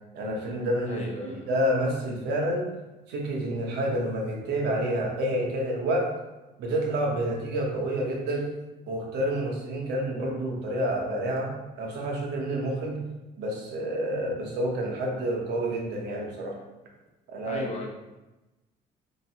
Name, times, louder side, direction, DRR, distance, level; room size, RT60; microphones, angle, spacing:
voice 1, 0.1-2.7 3.1-6.1 6.6-8.5 8.9-11.5 11.8-13.0 13.4-16.6 17.3-17.7, right 1 dB, 80° right, -1 dB, 0.9 m, -29 dB
voice 2, 0.9-1.5 17.4-17.9, left 2 dB, 40° left, 0 dB, 0.8 m, -37 dB
3.1 x 2.9 x 2.8 m, 1.0 s
cardioid pair, 110°, 17 cm